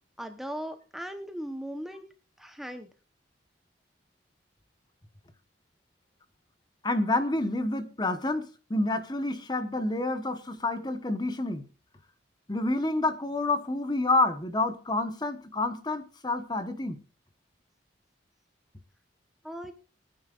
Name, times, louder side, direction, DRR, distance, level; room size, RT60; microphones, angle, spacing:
voice 1, 0.2-2.1 2.4-2.9 19.4-19.7, equal, ahead, 0.9 m, -38 dB
voice 2, 6.8-11.7 12.5-17.0, left 2 dB, 20° left, 1.1 m, -28 dB
22.5 x 9.5 x 2.5 m
head